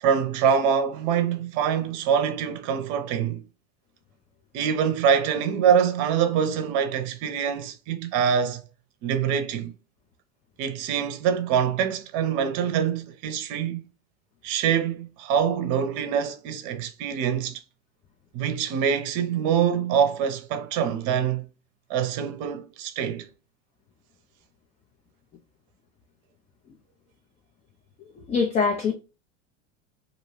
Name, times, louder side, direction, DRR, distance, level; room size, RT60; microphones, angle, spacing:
voice 1, 0.0-3.4 4.5-8.6 9.0-9.7 10.6-13.8 14.4-17.6 18.3-21.5 21.9-23.3, right 8 dB, 50° right, 0.7 m, -24 dB
voice 2, 28.2-28.9, left 5 dB, 20° left, 0.3 m, -23 dB
2.5 x 2.2 x 3.1 m
hypercardioid pair, 95°, 39 cm